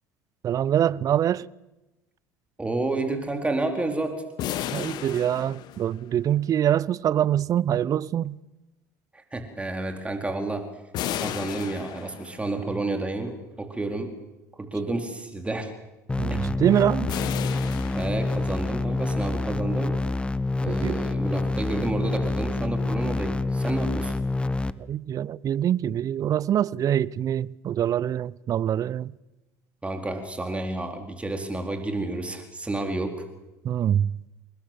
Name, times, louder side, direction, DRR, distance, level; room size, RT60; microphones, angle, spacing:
voice 1, 0.4-1.5 4.7-8.4 16.2-17.1 20.7-21.0 24.8-29.1 33.6-34.2, right 10 dB, 45° right, 0.8 m, -24 dB
voice 2, 2.6-4.2 9.1-10.7 11.2-14.1 14.5-15.7 16.3-16.4 17.9-20.0 20.6-24.1 29.8-33.2, right 2 dB, 15° right, 4.4 m, -30 dB
sound 1, 4.4-6.3 10.9-12.6 17.1-18.7, left 11 dB, 55° left, 1.7 m, -33 dB
sound 2, 16.1-24.7, left 2 dB, 10° left, 1.1 m, -27 dB
28.5 x 20.0 x 7.7 m
hypercardioid pair, 70°, 9 cm